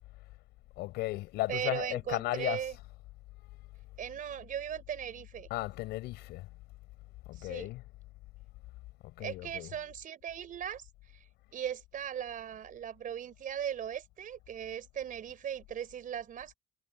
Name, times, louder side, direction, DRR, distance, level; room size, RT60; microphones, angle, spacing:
voice 1, 0.8-2.6 5.5-6.5 7.3-7.8 9.2-9.8, left 18 dB, 90° left, 4.5 m, -35 dB
voice 2, 1.5-2.8 4.0-5.5 7.3-7.7 9.2-10.9 11.1-11.2 11.5-16.5, right 9 dB, 55° right, 4.7 m, -38 dB
cardioid pair, 110°, 17 cm